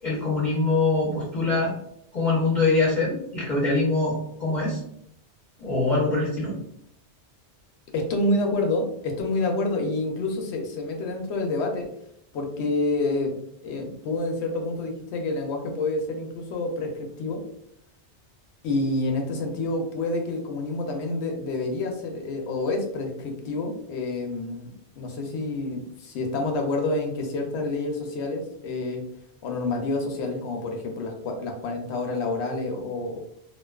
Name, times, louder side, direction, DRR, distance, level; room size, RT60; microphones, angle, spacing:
voice 1, 0.0-1.7 2.1-4.8 5.6-6.5, left 3 dB, 35° left, -7 dB, 0.7 m, -23 dB
voice 2, 7.9-11.9 12.3-13.3 13.6-17.4 18.6-24.7 25.0-29.0 29.4-33.2, left 2 dB, 75° left, 3 dB, 0.9 m, -28 dB
2.5 x 2.2 x 2.3 m, 0.72 s
omnidirectional pair, 1.2 m